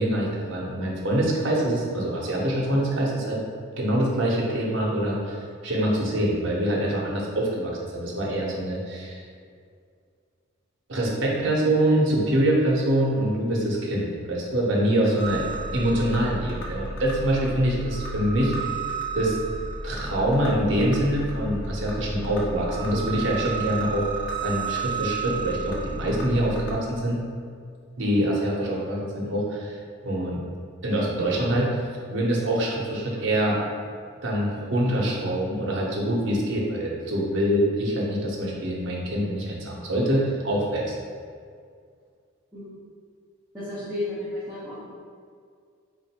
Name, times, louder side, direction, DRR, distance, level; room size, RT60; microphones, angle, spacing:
voice 1, 0.0-3.4 3.8-5.4 5.6-9.2 10.9-15.4 15.7-18.5 19.1-19.4 19.8-24.1 24.4-27.2 28.0-29.8 30.0-30.4 30.8-31.8 32.1-33.6 34.2-41.0, right 1 dB, 65° right, -4 dB, 0.8 m, -25 dB
sound 1, 15.2-26.7, right 4 dB, 60° left, 0.7 m, -32 dB
voice 2, 43.5-44.9, left 1 dB, 5° right, -14 dB, 0.9 m, -32 dB
3.6 x 2.5 x 4.2 m, 2.2 s
head